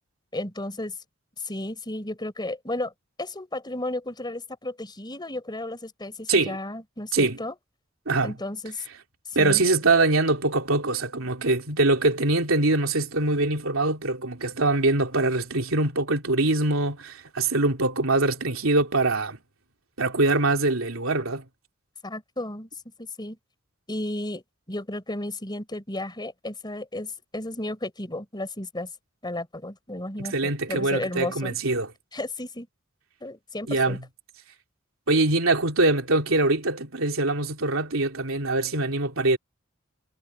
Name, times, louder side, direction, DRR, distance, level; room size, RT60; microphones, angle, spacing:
voice 1, 0.3-0.9 1.4-2.9 3.2-7.5 8.2-8.8 9.4-9.6 22.0-22.7 23.0-23.4 23.9-24.4 24.7-28.9 29.2-31.6 32.1-32.7 33.2-34.0, left 1 dB, 20° left, 4.2 m, -33 dB
voice 2, 9.3-19.4 20.0-21.4 30.2-31.9 33.7-34.0 35.1-39.4, right 2 dB, 85° right, 3.1 m, -23 dB
head